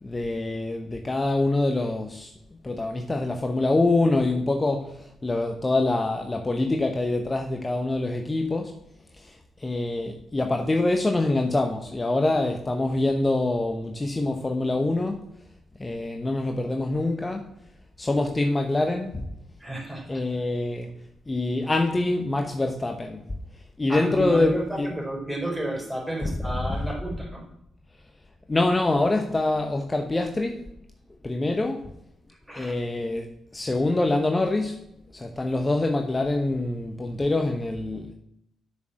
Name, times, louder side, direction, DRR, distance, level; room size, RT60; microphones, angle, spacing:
voice 1, 0.0-2.3 2.6-8.8 9.1-15.3 15.8-17.5 18.0-19.3 20.1-20.9 21.3-24.9 26.2-26.3 26.7-26.8 28.5-30.7 31.2-31.9 32.6-38.1, left 2 dB, 25° left, 1.0 m, -25 dB
voice 2, 19.6-20.2 23.9-27.5 32.5-32.7, right 1 dB, 10° right, 4.6 m, -31 dB
7.1 x 6.4 x 7.7 m
hypercardioid pair, 45°, 0 cm